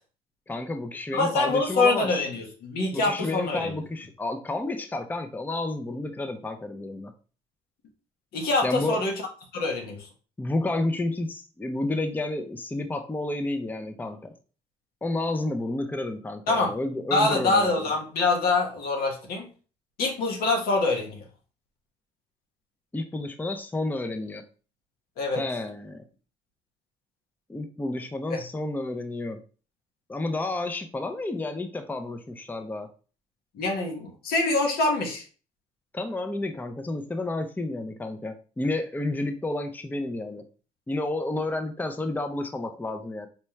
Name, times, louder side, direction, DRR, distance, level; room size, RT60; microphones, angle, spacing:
voice 1, 0.5-2.3 2.9-7.1 8.6-9.0 10.4-14.3 15.0-17.9 22.9-24.4 25.3-26.0 27.5-29.4 30.1-32.9 35.9-40.4 40.9-43.3, left 2 dB, 10° left, 7 dB, 0.5 m, -31 dB
voice 2, 1.1-3.8 8.3-9.1 9.5-10.1 16.5-16.7 17.1-19.5 20.0-21.2 25.2-25.4 28.3-28.4 33.5-35.2, left 3 dB, 70° left, 2 dB, 1.1 m, -25 dB
4.3 x 2.2 x 3.2 m, 0.37 s
supercardioid pair, 60°, 16 cm